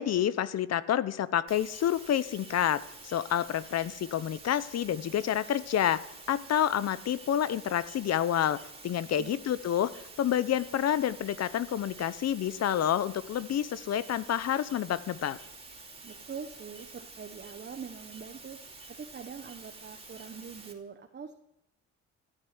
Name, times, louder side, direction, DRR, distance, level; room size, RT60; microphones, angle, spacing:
voice 1, 0.0-9.9 10.2-15.4, left 10 dB, 55° left, 17 dB, 0.9 m, -29 dB
sound 1, 1.5-20.7, right 3 dB, 20° right, 2.8 m, -49 dB
voice 2, 16.0-18.6 19.0-21.3, right 6 dB, 35° right, 5 dB, 1.2 m, -43 dB
14.5 x 8.1 x 9.2 m, 0.81 s
cardioid pair, 90°, 30 cm